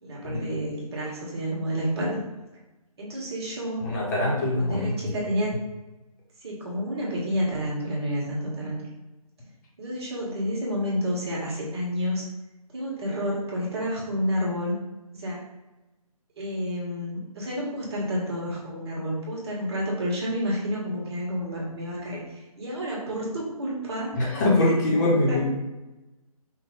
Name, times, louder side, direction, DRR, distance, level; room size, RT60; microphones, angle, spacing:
voice 1, 0.0-2.2 3.0-3.8 4.6-5.5 6.4-8.9 9.8-12.2 12.7-14.8 15.1-15.4 16.4-22.2 22.6-24.1 24.6-24.8 25.3-25.4, equal, 45° right, -4 dB, 1.5 m, -29 dB
voice 2, 3.8-4.9 24.2-25.4, left 1 dB, 30° left, -5 dB, 1.1 m, -23 dB
5.2 x 2.6 x 3.7 m, 1.1 s
figure-of-eight pair, 150°, 19 cm